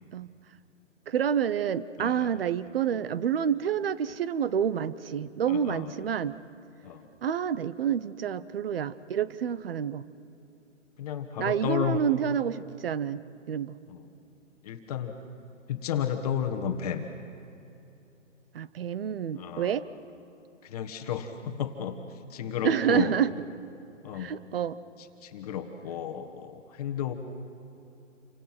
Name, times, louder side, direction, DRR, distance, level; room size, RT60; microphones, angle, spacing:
voice 1, 1.1-6.4 7.2-10.0 11.4-13.2 13.5-13.8 18.5-19.9 22.6-23.3 24.1-24.8, right 8 dB, 50° right, 17 dB, 0.9 m, -28 dB
voice 2, 2.0-2.3 5.5-5.9 6.8-7.0 11.0-12.0 13.9-14.0 14.6-15.1 15.7-17.0 19.4-19.7 20.6-22.0 22.3-23.1 24.0-24.3 25.2-27.1, left 9 dB, 30° left, 5 dB, 1.4 m, -32 dB
28.5 x 25.0 x 6.0 m, 2.8 s
hypercardioid pair, 155°, 38 cm